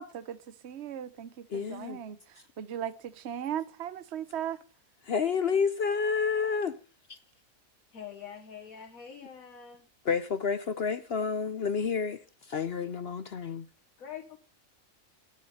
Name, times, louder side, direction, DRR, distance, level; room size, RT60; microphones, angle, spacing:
voice 1, 0.0-4.6, right 9 dB, 55° right, 1.1 m, -38 dB
voice 2, 1.5-2.0 5.0-6.7 7.1-7.2 10.0-13.7, left 6 dB, 55° left, 0.8 m, -30 dB
voice 3, 7.9-9.9 14.0-14.4, left 8 dB, 80° left, 1.8 m, -45 dB
11.5 x 9.5 x 5.4 m
omnidirectional pair, 1.5 m